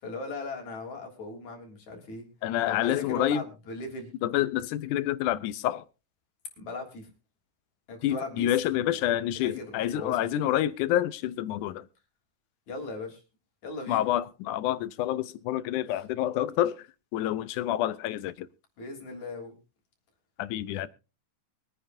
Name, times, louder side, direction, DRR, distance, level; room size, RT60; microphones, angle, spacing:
voice 1, 0.0-2.3 2.7-4.1 6.6-7.1 7.9-9.0 9.4-10.3 12.7-13.2 13.6-14.1 18.8-19.5 20.7-20.9, left 3 dB, 60° left, 4.7 m, -38 dB
voice 2, 2.4-3.4 4.2-5.8 8.0-11.9 13.9-16.8 17.1-18.5 20.4-20.9, left 12 dB, 75° left, 2.1 m, -28 dB
23.0 x 9.7 x 2.7 m
omnidirectional pair, 3.8 m